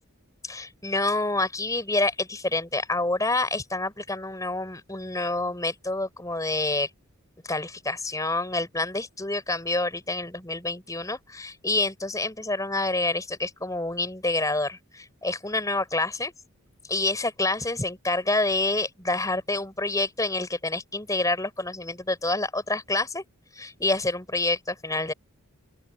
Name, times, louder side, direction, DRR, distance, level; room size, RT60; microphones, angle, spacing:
voice 1, 0.5-6.9 7.5-16.3 16.9-23.2 23.5-25.1, left 2 dB, 15° left, 5.0 m, -27 dB
open air
head